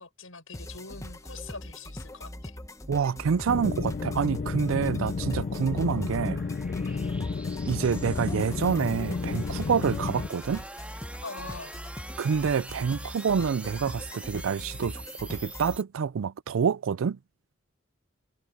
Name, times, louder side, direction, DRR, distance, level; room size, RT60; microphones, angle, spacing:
voice 1, 0.0-2.6 6.9-7.1 11.2-11.7, left 4 dB, 85° left, 6.0 m, -43 dB
sound 1, 0.5-15.8, left 1 dB, 15° left, 1.0 m, -41 dB
sound 2, 1.9-15.8, right 1 dB, 5° right, 3.6 m, -46 dB
voice 2, 2.9-6.4 7.7-10.6 12.2-17.2, right 6 dB, 80° right, 0.4 m, -27 dB
sound 3, 3.5-10.3, left 4 dB, 45° left, 0.3 m, -32 dB
head